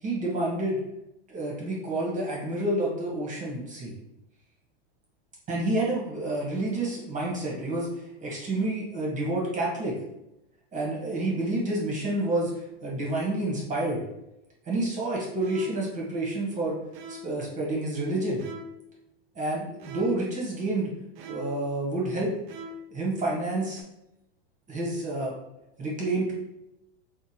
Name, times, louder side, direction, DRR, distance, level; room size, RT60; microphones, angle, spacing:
voice 1, 0.0-0.8 1.3-3.9 5.5-7.9 8.2-10.0 10.7-14.0 14.7-16.8 17.1-18.4 19.3-20.9 21.3-22.4 22.9-23.8 24.7-25.3 25.8-26.3, right 2 dB, 25° right, -3 dB, 1.1 m, -29 dB
sound 1, 15.4-16.0 16.9-17.5 18.4-18.9 19.8-20.4 21.1-21.7 22.5-23.0 23.8-23.9, equal, 55° right, 0.5 m, -43 dB
3.7 x 2.2 x 2.8 m, 0.88 s
supercardioid pair, 115°, 32 cm